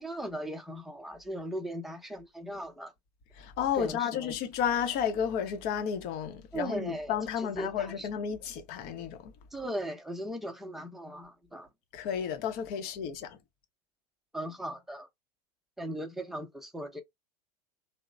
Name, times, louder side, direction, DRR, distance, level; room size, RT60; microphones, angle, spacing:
voice 1, 0.0-2.9 3.8-4.4 6.5-8.1 9.5-11.7 14.3-15.1 15.8-17.0, right 1 dB, ahead, 0.6 m, -38 dB
voice 2, 3.4-9.3 11.9-13.4, left 8 dB, 50° left, 0.8 m, -32 dB
2.9 x 2.0 x 2.4 m
hypercardioid pair, 95°, 20 cm